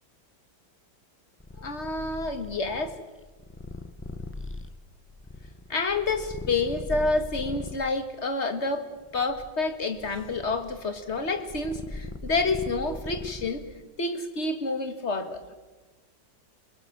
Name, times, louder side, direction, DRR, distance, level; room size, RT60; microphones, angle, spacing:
Purr, 1.4-7.9 8.6-13.8, left 2 dB, 15° left, 0.5 m, -40 dB
voice 1, 1.6-3.0 5.7-8.9 9.1-13.7 14.0-15.4, left 3 dB, 35° left, 8 dB, 2.0 m, -28 dB
28.0 x 20.0 x 7.5 m, 1.2 s
omnidirectional pair, 2.1 m